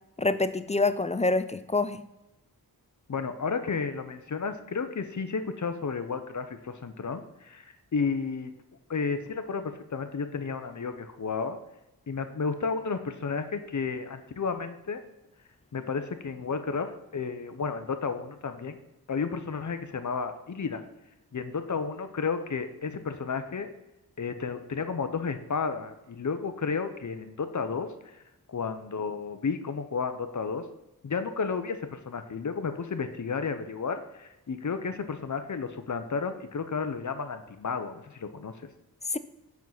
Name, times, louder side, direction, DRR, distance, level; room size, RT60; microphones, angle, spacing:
voice 1, 0.2-2.0 39.1-39.2, left 3 dB, 20° left, 12 dB, 0.3 m, -26 dB
voice 2, 3.1-8.5 8.9-11.6 12.1-15.0 15.7-18.8 19.1-20.8 21.3-23.7 24.2-27.9 28.1-28.2 28.5-30.6 31.0-38.5, left 5 dB, 50° left, 9 dB, 0.7 m, -32 dB
7.3 x 5.9 x 4.0 m, 0.97 s
wide cardioid pair, 95°, 38 cm